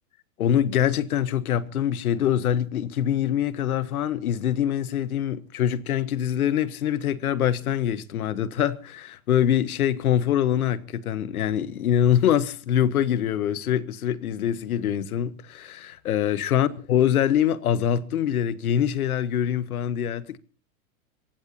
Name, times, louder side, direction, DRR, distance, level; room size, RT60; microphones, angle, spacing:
voice 1, 0.4-20.4, left 10 dB, 85° left, 1.3 m, -24 dB
27.5 x 15.5 x 2.7 m
hypercardioid pair, 125°, 43 cm